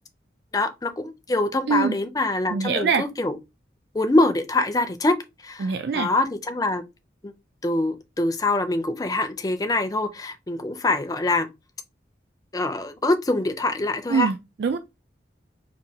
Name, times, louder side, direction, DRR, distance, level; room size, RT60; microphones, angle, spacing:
voice 1, 0.5-3.4 3.9-6.8 7.2-7.3 7.6-11.5 12.5-14.3, left 2 dB, 20° left, 0.4 m, -24 dB
voice 2, 2.5-3.0 5.6-6.1 14.1-14.8, right 5 dB, 70° right, 0.4 m, -23 dB
5.2 x 2.6 x 2.8 m
head